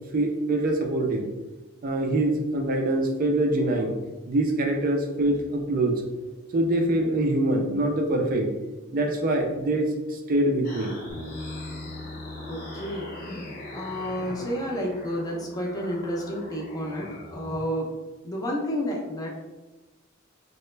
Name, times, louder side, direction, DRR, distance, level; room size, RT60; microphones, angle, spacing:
voice 1, 0.1-1.3 1.8-3.9 4.3-6.0 6.5-8.5 8.9-10.9, right 1 dB, 45° right, 3 dB, 0.4 m, -24 dB
sound 1, 10.6-17.6, left 1 dB, 50° left, 0.7 m, -41 dB
Bass guitar, 11.1-17.3, left 1 dB, 80° left, 1.0 m, -43 dB
voice 2, 12.5-17.9 18.2-19.3, equal, 20° left, -1 dB, 0.5 m, -31 dB
3.2 x 2.1 x 3.1 m, 1.1 s
head